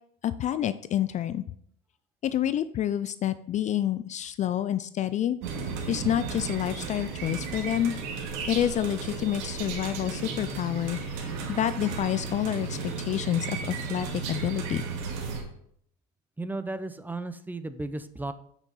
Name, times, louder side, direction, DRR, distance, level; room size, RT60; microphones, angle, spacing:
voice 1, 0.2-1.4 2.2-5.4 5.9-8.0 8.5-14.9, left 11 dB, 40° left, 14 dB, 0.4 m, -28 dB
sound 1, 5.4-15.4, right 5 dB, 80° right, 2.1 m, -34 dB
voice 2, 16.4-18.3, right 2 dB, 10° right, 12 dB, 0.6 m, -34 dB
8.7 x 6.1 x 4.0 m, 0.66 s
supercardioid pair, 105°, 20 cm